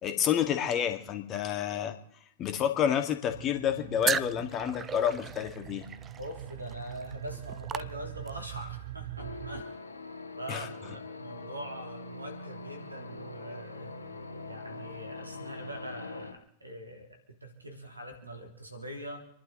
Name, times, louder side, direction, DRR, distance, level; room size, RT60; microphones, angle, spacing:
voice 1, 0.0-2.0 2.4-5.9 10.5-10.7, left 9 dB, 30° left, 7 dB, 2.0 m, -29 dB
sound 1, 3.3-9.6, right 12 dB, 60° right, 1.0 m, -43 dB
sound 2, 4.0-8.5, right 7 dB, 20° right, 0.6 m, -36 dB
voice 2, 6.2-9.6 10.3-14.0 14.4-19.2, equal, 85° right, 3 dB, 3.2 m, -43 dB
sound 3, 9.2-16.3, left 3 dB, 80° left, 2.0 m, -43 dB
28.5 x 11.5 x 3.9 m, 0.73 s
figure-of-eight pair, 90°, 0 cm